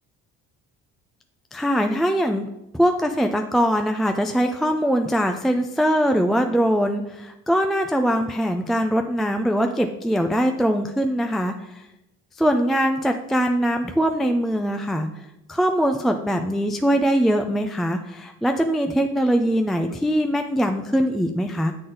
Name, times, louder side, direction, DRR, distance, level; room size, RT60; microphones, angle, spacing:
voice 1, 1.5-2.5 2.7-11.9 12.4-21.7, equal, ahead, 5 dB, 0.3 m, -22 dB
7.5 x 4.0 x 3.8 m, 0.88 s
supercardioid pair, 70°, 34 cm